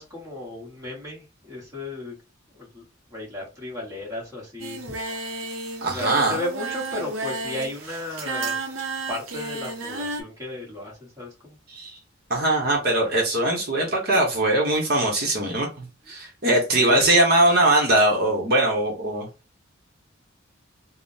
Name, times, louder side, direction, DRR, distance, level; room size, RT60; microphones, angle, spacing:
voice 1, 0.0-2.2 2.5-5.0 5.8-8.6 9.1-11.6 16.8-17.1, left 2 dB, 15° right, 1.1 m, -34 dB
Singing, 4.6-10.2, right 3 dB, 85° right, 0.7 m, -32 dB
voice 2, 5.8-6.4 11.7-12.0 12.3-19.3, right 1 dB, 50° right, 0.8 m, -21 dB
3.5 x 2.1 x 2.6 m
head